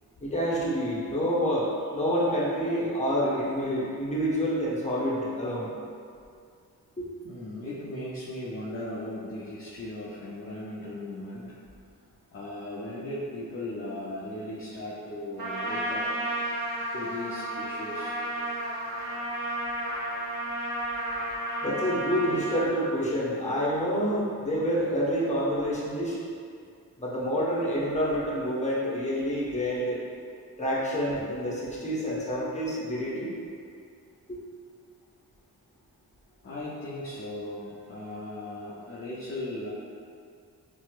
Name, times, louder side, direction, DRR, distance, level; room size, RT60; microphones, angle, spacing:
voice 1, 0.2-5.7 7.0-7.1 21.6-26.2 27.0-30.0 30.6-33.3 34.3-34.4, equal, 15° left, -7 dB, 1.0 m, -28 dB
voice 2, 7.2-11.6 12.3-18.4 36.4-39.7, left 1 dB, 35° left, -7 dB, 0.6 m, -37 dB
Trumpet, 15.4-22.7, right 1 dB, 60° right, 0.8 m, -32 dB
4.2 x 2.0 x 2.4 m, 2.3 s
supercardioid pair, 45°, 40 cm